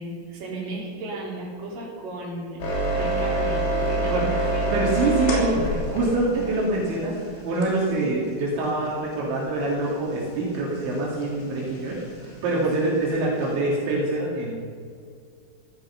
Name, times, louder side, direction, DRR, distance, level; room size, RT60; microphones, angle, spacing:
voice 1, 0.0-2.7 2.9-4.6 8.0-8.2 12.8-12.9, right 2 dB, 45° right, -5 dB, 5.6 m, -34 dB
sound 1, 2.6-7.9 9.5-13.6, right 1 dB, 60° left, 5.2 m, -26 dB
voice 2, 4.0-14.5, right 2 dB, 70° right, -5 dB, 4.8 m, -25 dB
16.5 x 14.5 x 5.8 m, 2.2 s
omnidirectional pair, 5.6 m